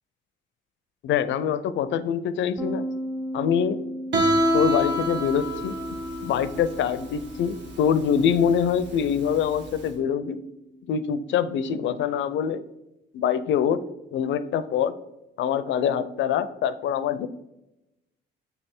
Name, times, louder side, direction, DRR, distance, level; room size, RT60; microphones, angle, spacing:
voice 1, 1.0-2.9 3.3-3.8 4.5-5.8 6.2-10.4 10.9-12.6 13.1-13.8 14.1-14.9 15.4-17.3, left 8 dB, 70° left, 14 dB, 0.4 m, -24 dB
sound 1, 2.6-12.0, right 1 dB, 10° right, 0.7 m, -38 dB
Guitar, 4.1-9.8, right 1 dB, 60° right, 1.2 m, -27 dB
6.8 x 3.3 x 4.3 m, 0.94 s
cardioid pair, 90°, 20 cm